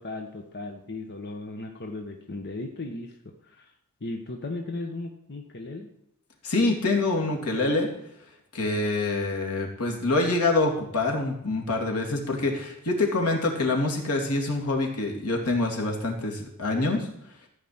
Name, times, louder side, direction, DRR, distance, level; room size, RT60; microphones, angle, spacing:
voice 1, 0.0-3.7 4.0-5.9, left 2 dB, 50° left, 3 dB, 1.2 m, -36 dB
voice 2, 6.4-7.9 8.5-17.1, left 2 dB, 85° left, 0 dB, 2.8 m, -26 dB
14.5 x 5.2 x 8.8 m, 0.76 s
head